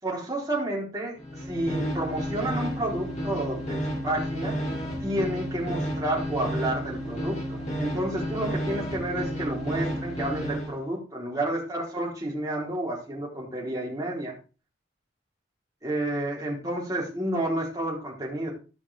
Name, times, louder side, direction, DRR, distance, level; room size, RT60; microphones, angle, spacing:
voice 1, 0.0-1.2 1.5-4.6 5.0-14.3 15.8-18.5, right 1 dB, 20° right, -4 dB, 4.0 m, -30 dB
sound 1, 1.2-10.7, equal, 40° left, 3.0 m, -32 dB
15.5 x 5.9 x 3.6 m, 0.34 s
head